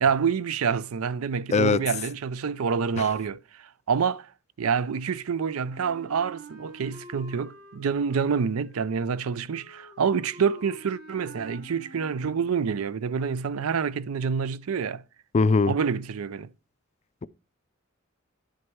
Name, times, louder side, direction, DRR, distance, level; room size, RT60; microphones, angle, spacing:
voice 1, 0.0-4.3 4.6-15.0 15.7-16.5, right 6 dB, 90° right, 0.5 m, -27 dB
voice 2, 1.5-1.8 15.3-15.7, left 4 dB, 30° left, 0.4 m, -20 dB
Wind instrument woodwind instrument, 5.7-12.7, right 2 dB, 55° right, 2.0 m, -48 dB
10.5 x 6.4 x 4.5 m
head